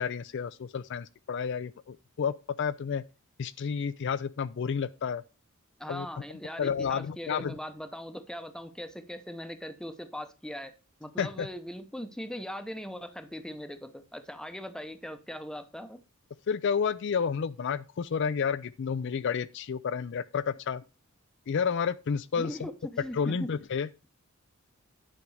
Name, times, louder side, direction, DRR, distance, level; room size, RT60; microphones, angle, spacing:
voice 1, 0.0-3.0 3.4-5.2 5.9-6.1 6.6-7.5 11.2-11.5 16.5-20.8 21.5-22.7 23.1-23.9, left 6 dB, 55° left, 0.4 m, -30 dB
voice 2, 5.8-10.7 11.0-16.0 22.4-23.5, equal, 5° left, 0.8 m, -40 dB
9.9 x 5.3 x 4.7 m
head